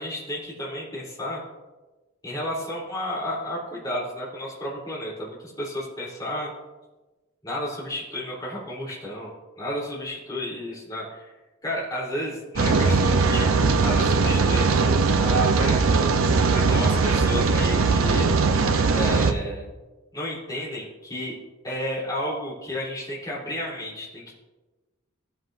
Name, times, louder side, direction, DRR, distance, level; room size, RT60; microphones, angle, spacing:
voice 1, 0.0-1.4 2.2-6.5 7.4-9.3 9.6-11.3 11.6-15.8 16.4-18.3 18.9-19.7 20.1-21.4 21.6-24.3, left 1 dB, 20° left, -7 dB, 3.4 m, -32 dB
Rain, 12.6-19.3, right 4 dB, 80° right, 0.7 m, -20 dB
17.0 x 7.8 x 2.6 m, 1.2 s
head